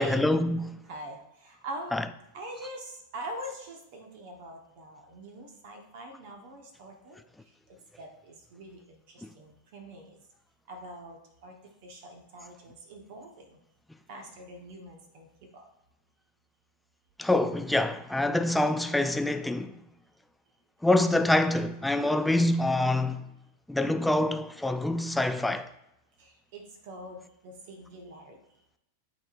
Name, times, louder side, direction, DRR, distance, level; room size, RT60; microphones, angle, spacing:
voice 1, 0.0-0.8 1.9-2.0 9.2-9.3 17.2-19.7 20.8-23.2 23.7-25.7, left 1 dB, 5° left, 0.4 m, -25 dB
voice 2, 0.8-2.1 2.3-10.2 10.7-13.6 14.1-15.3 15.5-15.6 26.2-28.4, right 1 dB, 50° right, 1.1 m, -44 dB
12.0 x 4.2 x 2.5 m
figure-of-eight pair, 90°, 0 cm